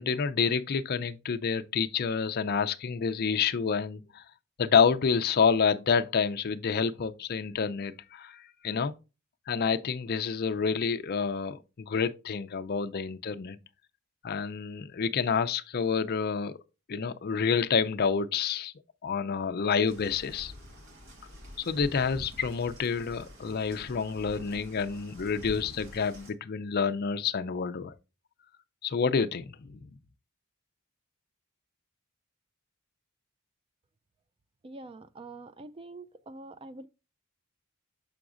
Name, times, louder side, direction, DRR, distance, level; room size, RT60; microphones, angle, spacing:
voice 1, 0.0-4.2 4.6-8.9 9.5-13.6 14.2-16.6 16.9-18.7 19.0-20.5 21.7-27.9 28.8-29.9, left 6 dB, 45° left, 0.5 m, -28 dB
sound 1, 19.9-26.3, equal, 60° right, 1.8 m, -47 dB
voice 2, 34.6-36.9, right 2 dB, 25° right, 0.3 m, -45 dB
6.9 x 5.9 x 2.5 m
head